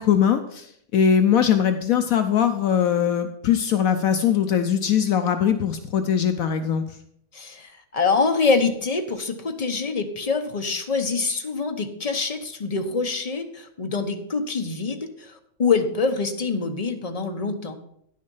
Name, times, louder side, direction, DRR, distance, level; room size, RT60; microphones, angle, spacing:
voice 1, 0.0-6.8, left 8 dB, 70° left, 8 dB, 1.0 m, -21 dB
voice 2, 7.3-17.8, left 4 dB, 35° left, 5 dB, 0.7 m, -25 dB
10.5 x 6.4 x 5.4 m, 0.72 s
omnidirectional pair, 1.6 m